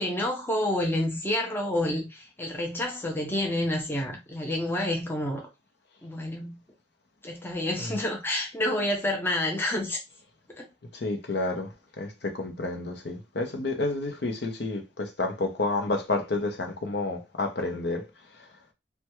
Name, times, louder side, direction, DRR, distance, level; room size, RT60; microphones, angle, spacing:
voice 1, 0.0-5.5 6.0-6.6 7.2-10.0 10.6-10.7, left 1 dB, 10° left, 0.6 m, -29 dB
voice 2, 10.9-18.0, left 2 dB, 60° left, 0.7 m, -30 dB
3.3 x 2.2 x 3.0 m
head